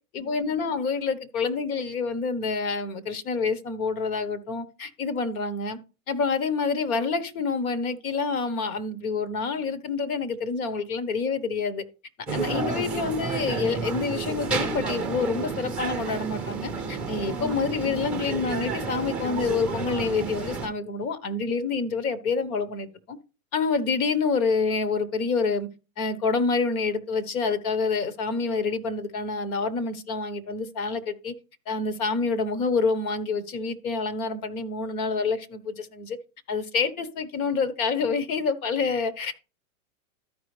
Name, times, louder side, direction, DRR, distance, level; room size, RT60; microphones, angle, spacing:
voice 1, 0.1-5.8 6.1-11.8 12.3-23.2 23.5-25.7 26.0-31.3 31.7-36.2 36.5-39.3, left 4 dB, 70° left, 1.4 m, -27 dB
sound 1, 12.3-20.7, right 4 dB, ahead, 0.8 m, -31 dB
13.0 x 5.2 x 3.3 m
supercardioid pair, 155°, 44 cm